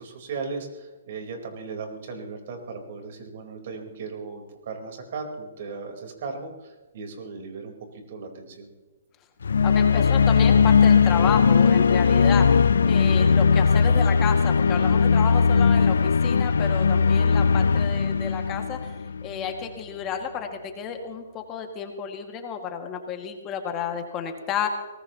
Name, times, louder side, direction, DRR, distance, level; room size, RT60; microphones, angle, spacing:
voice 1, 0.0-8.7, right 4 dB, 60° right, 3 dB, 4.2 m, -37 dB
sound 1, 9.4-19.5, left 5 dB, 80° left, 0.4 m, -19 dB
voice 2, 9.6-12.6 12.9-18.9 19.2-24.7, left 7 dB, 25° left, 4 dB, 2.1 m, -31 dB
23.0 x 19.0 x 3.0 m, 1.2 s
hypercardioid pair, 135°, 0 cm